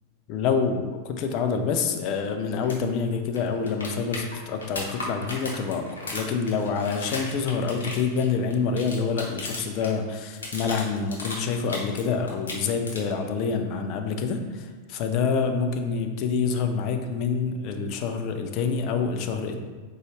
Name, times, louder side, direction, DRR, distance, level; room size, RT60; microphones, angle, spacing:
voice 1, 0.3-19.6, left 5 dB, 40° left, 6 dB, 0.4 m, -27 dB
sound 1, 2.6-2.8 3.0-3.1 3.4-9.9 10.2-12.0 12.3-13.2 15.3-15.4, left 2 dB, 70° left, 0.7 m, -35 dB
4.0 x 2.3 x 3.1 m, 1.4 s
figure-of-eight pair, 90°, 0 cm